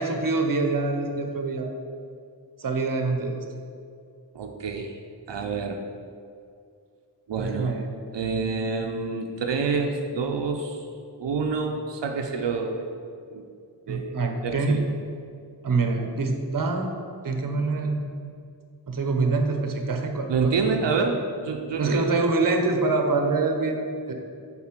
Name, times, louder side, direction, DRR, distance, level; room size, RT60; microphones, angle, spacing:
voice 1, 0.0-1.7 2.6-3.4 7.4-7.9 13.9-14.9 15.6-16.9 17.2-18.1 18.9-20.8 21.8-24.1, right 3 dB, 50° right, 4 dB, 0.8 m, -25 dB
voice 2, 4.3-4.9 5.3-5.8 7.3-7.7 8.1-10.8 11.2-12.9 13.3-13.4 13.9-14.1 14.4-14.8 20.3-22.1, right 4 dB, 85° right, 2 dB, 0.6 m, -27 dB
7.3 x 4.1 x 4.4 m, 2.4 s
wide cardioid pair, 70°, 42 cm